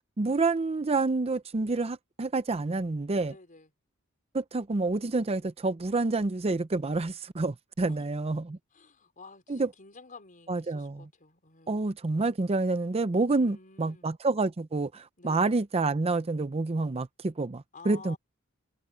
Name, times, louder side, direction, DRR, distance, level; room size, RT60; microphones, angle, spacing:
voice 1, 0.2-3.3 4.3-8.6 9.5-9.7 10.5-11.1 11.7-18.2, right 3 dB, 30° right, 0.6 m, -28 dB
voice 2, 3.3-3.7 7.9-8.0 8.7-11.8 13.3-14.1 15.2-15.6 17.7-18.2, left 4 dB, 40° left, 4.9 m, -51 dB
head